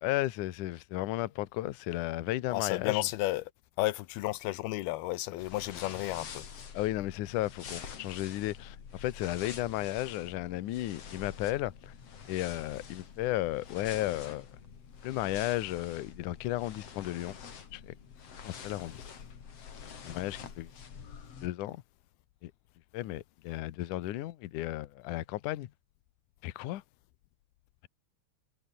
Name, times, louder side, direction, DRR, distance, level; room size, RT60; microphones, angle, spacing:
voice 1, 0.0-3.1 6.7-11.9 12.3-14.5 15.0-17.3 17.7-17.9 18.4-19.0 20.0-20.7 21.4-21.8 22.4-22.5 22.9-25.7 26.4-26.8, left 16 dB, 65° left, 2.3 m, -34 dB
voice 2, 2.5-3.4 3.8-6.4, left 17 dB, 90° left, 2.8 m, -32 dB
sound 1, 5.4-21.5, left 7 dB, 45° left, 3.2 m, -47 dB
omnidirectional pair, 4.4 m